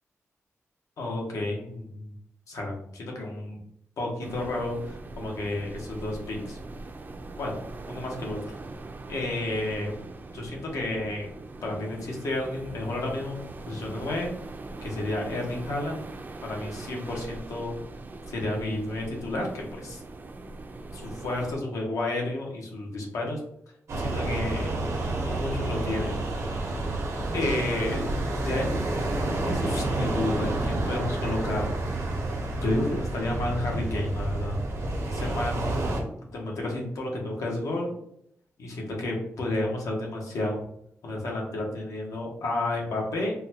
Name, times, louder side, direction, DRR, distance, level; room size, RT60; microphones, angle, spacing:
voice 1, 1.0-2.1 2.5-3.6 4.0-6.6 7.4-7.6 7.9-8.6 9.1-10.0 10.3-11.3 11.6-14.4 14.8-16.0 16.4-17.8 18.3-20.0 20.9-23.4 24.0-24.7 25.2-26.2 27.3-28.1 28.4-29.0 29.4-31.6 32.6-34.6 35.1-35.7 36.3-37.9 38.6-40.6 41.0-43.3, left 2 dB, 85° left, 0 dB, 0.9 m, -31 dB
sound 1, 4.2-21.5, right 2 dB, 35° right, 0.4 m, -41 dB
sound 2, 23.9-36.0, right 2 dB, 80° right, 0.8 m, -29 dB
3.8 x 2.2 x 2.8 m, 0.72 s
wide cardioid pair, 100°, 5 cm